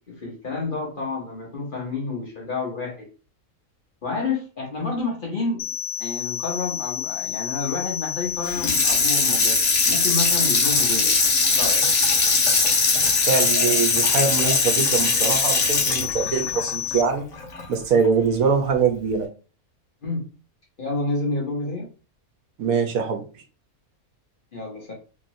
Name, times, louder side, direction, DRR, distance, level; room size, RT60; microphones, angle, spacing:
voice 1, 0.0-3.1 4.0-11.1 11.5-11.8 13.5-13.8 14.1-14.6 20.0-20.3 20.8-21.9 24.5-24.9, left 3 dB, 45° left, -2 dB, 0.9 m, -29 dB
sound 1, 5.6-17.0, left 12 dB, 75° left, 1.0 m, -30 dB
Water tap faucet / Sink (filling or washing), 8.4-17.6 18.0-18.1, left 3 dB, 60° left, 1.2 m, -21 dB
voice 2, 13.2-17.3 17.7-19.3 22.6-23.2, right 5 dB, 70° right, 4 dB, 1.1 m, -23 dB
3.0 x 2.8 x 2.6 m, 0.34 s
omnidirectional pair, 1.5 m